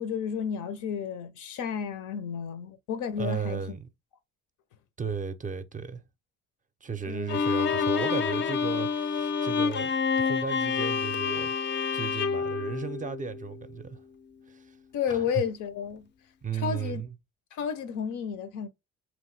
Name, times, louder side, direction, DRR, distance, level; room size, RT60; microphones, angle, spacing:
voice 1, 0.0-3.6 7.1-7.4 14.9-16.1 16.5-17.0 17.5-18.7, left 7 dB, 80° left, 0.6 m, -32 dB
voice 2, 3.2-3.9 5.0-6.0 6.8-9.9 10.2-11.5 11.9-14.0 14.5-14.6 15.1-15.3 16.4-17.1, right 6 dB, 25° right, 0.4 m, -35 dB
Bowed string instrument, 7.3-13.6, left 5 dB, 40° left, 0.4 m, -28 dB
2.9 x 2.1 x 3.1 m
cardioid pair, 90°, 30 cm